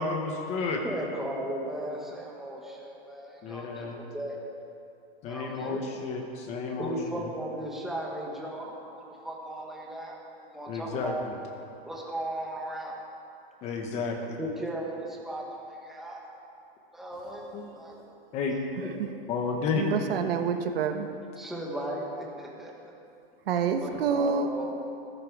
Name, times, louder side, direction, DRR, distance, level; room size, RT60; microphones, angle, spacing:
voice 1, 0.0-0.8 3.4-4.0 5.2-7.3 10.7-11.3 13.6-14.4 17.5-17.7 18.3-18.6 19.3-19.9, left 4 dB, 20° left, 3 dB, 1.1 m, -32 dB
voice 2, 0.8-4.4 5.3-5.8 6.8-10.2 10.5-11.3 11.9-13.0 14.4-16.2 16.9-18.0 21.3-22.9 23.8-24.7, right 1 dB, ahead, -3 dB, 1.3 m, -36 dB
voice 3, 19.7-21.1 23.5-24.5, right 6 dB, 65° right, 6 dB, 1.3 m, -27 dB
14.5 x 14.5 x 4.7 m, 2.6 s
supercardioid pair, 170°, 31 cm